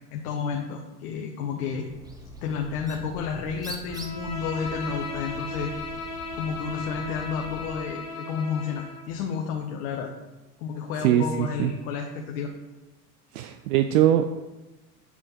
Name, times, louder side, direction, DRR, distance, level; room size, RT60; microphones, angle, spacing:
voice 1, 0.1-1.9 2.4-5.7 6.3-10.1 10.6-12.5, left 6 dB, 60° left, 2 dB, 0.9 m, -31 dB
Bird, 1.8-7.8, right 1 dB, 10° right, 0.7 m, -43 dB
Bowed string instrument, 3.9-9.1, left 3 dB, 35° left, 1.3 m, -36 dB
voice 2, 11.0-11.7 13.3-14.3, right 11 dB, 70° right, 8 dB, 0.5 m, -22 dB
7.1 x 6.1 x 2.9 m, 1.1 s
hypercardioid pair, 90°, 47 cm